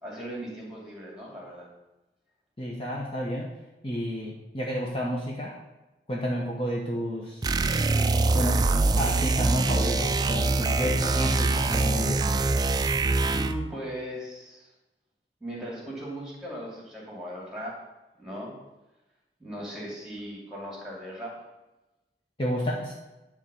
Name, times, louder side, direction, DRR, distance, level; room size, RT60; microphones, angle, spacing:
voice 1, 0.0-1.7 13.3-14.7 15.4-17.8 18.2-18.5 19.4-21.4, equal, 5° right, -3 dB, 2.5 m, -38 dB
voice 2, 2.6-3.5 3.8-5.6 6.1-7.5 8.3-8.6 9.0-12.2 22.4-22.9, equal, 30° left, -3 dB, 1.0 m, -30 dB
sound 1, 7.4-13.7, right 3 dB, 20° right, 0.3 m, -24 dB
10.5 x 3.7 x 6.8 m, 1.0 s
head